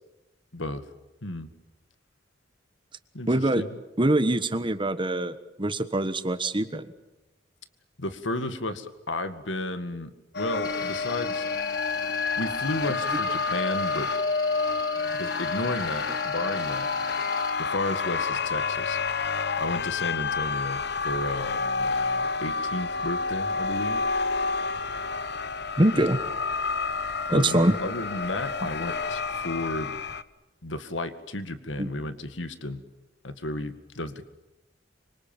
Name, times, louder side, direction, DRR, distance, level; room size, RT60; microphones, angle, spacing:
voice 1, 0.5-0.8 1.2-1.5 3.1-3.8 8.0-11.5 12.4-14.1 15.1-16.9 17.6-19.0 19.6-24.1 27.3-30.0 30.6-32.8 33.2-34.3, left 2 dB, 85° left, 10 dB, 2.1 m, -33 dB
voice 2, 3.3-3.6 4.0-6.9 25.8-26.2 27.3-27.8 28.6-28.7 31.8-31.9, right 1 dB, 25° right, 11 dB, 1.4 m, -24 dB
sound 1, 10.3-30.2, left 4 dB, 60° left, 1.1 m, -29 dB
sound 2, 10.6-17.5, left 3 dB, 20° left, 3.5 m, -43 dB
26.0 x 25.5 x 9.1 m, 0.97 s
head